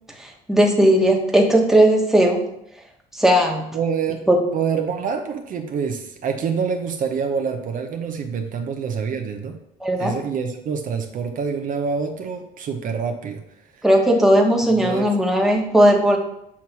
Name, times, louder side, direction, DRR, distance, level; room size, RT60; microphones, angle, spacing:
voice 1, 0.2-2.4 3.1-3.6 4.3-4.4 9.8-10.1 13.8-16.2, right 1 dB, ahead, 0 dB, 1.2 m, -17 dB
voice 2, 3.7-4.3 4.5-9.6 10.0-13.4 14.7-15.1, right 6 dB, 50° right, 5 dB, 0.8 m, -26 dB
7.2 x 3.1 x 5.9 m, 0.77 s
cardioid pair, 110°, 17 cm